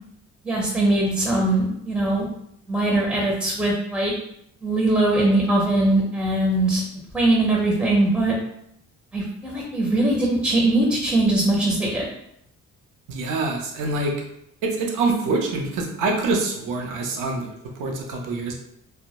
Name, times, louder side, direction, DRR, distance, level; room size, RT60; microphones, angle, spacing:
voice 1, 0.4-2.3 2.7-4.1 4.6-6.8 7.1-8.3 9.1-12.1, right 2 dB, 5° right, -3 dB, 0.5 m, -21 dB
voice 2, 13.1-14.1 14.6-18.5, right 3 dB, 85° right, 1 dB, 0.6 m, -25 dB
2.1 x 2.0 x 2.8 m, 0.74 s
cardioid pair, 90°, 30 cm